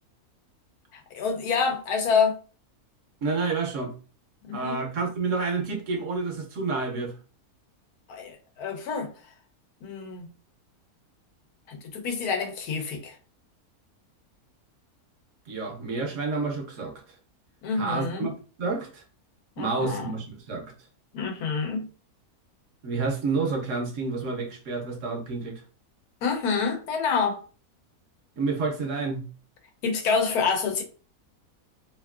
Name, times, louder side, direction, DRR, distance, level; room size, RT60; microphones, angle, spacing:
voice 1, 0.9-2.4 4.5-4.8 8.1-9.1 9.8-10.3 11.7-13.2 17.6-18.3 19.6-20.1 21.1-21.9 26.2-27.4 29.8-30.8, left 5 dB, 90° left, 1.2 m, -27 dB
voice 2, 3.2-3.9 4.5-7.1 15.5-16.9 17.7-18.3 18.6-19.0 19.6-20.7 22.8-25.6 28.4-29.2, right 4 dB, 65° right, 0.9 m, -29 dB
2.9 x 2.6 x 2.3 m
omnidirectional pair, 1.6 m